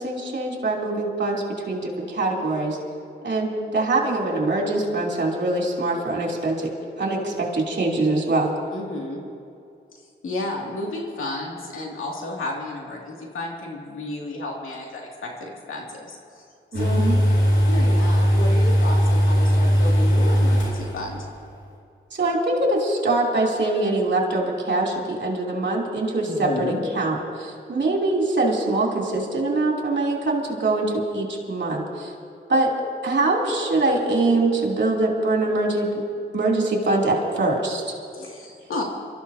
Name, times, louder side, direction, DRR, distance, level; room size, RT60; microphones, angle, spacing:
voice 1, 0.0-2.8 3.2-6.7 7.0-8.5 16.7-17.1 22.1-32.1 32.5-32.7 33.0-36.0 36.3-37.9, right 2 dB, 60° right, -2 dB, 3.0 m, -23 dB
voice 2, 8.7-9.2 10.2-16.4 16.7-17.0 17.6-21.3 26.3-26.8 38.1-38.8, left 2 dB, 85° left, -1 dB, 2.5 m, -32 dB
sound 1, 16.7-21.2 21.5-21.6, equal, 70° left, 3.9 m, -19 dB
28.0 x 14.0 x 2.8 m, 2.5 s
cardioid pair, 55°, 20 cm